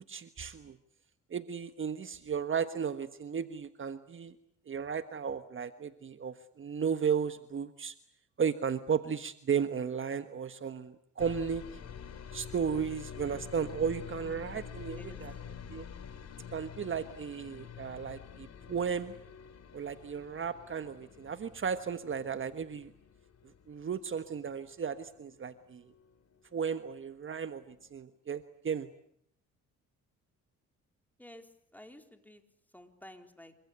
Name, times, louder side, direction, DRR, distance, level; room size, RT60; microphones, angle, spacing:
voice 1, 0.1-0.8 1.3-4.4 4.7-7.9 8.4-11.6 12.3-15.3 15.7-15.9 16.5-19.1 19.7-22.9 23.7-25.8 26.5-28.9, right 7 dB, 40° right, 10 dB, 1.4 m, -34 dB
sound 1, 11.2-27.0 27.3-28.0, left 7 dB, 55° left, 3.5 m, -48 dB
voice 2, 14.9-15.3 31.2-32.4 32.7-33.6, left 1 dB, 5° left, 5 dB, 4.1 m, -52 dB
27.5 x 25.0 x 8.2 m, 0.69 s
cardioid pair, 90°, 30 cm